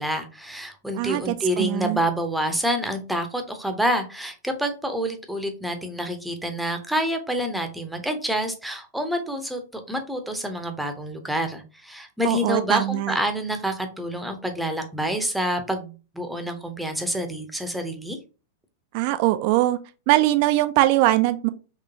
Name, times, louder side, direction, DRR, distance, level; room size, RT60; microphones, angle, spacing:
voice 1, 0.0-18.2, equal, ahead, 0.7 m, -27 dB
voice 2, 1.0-2.0 12.2-13.2 18.9-19.8 20.1-21.5, right 16 dB, 45° right, 0.3 m, -21 dB
3.6 x 3.2 x 2.8 m
figure-of-eight pair, 95°, 0 cm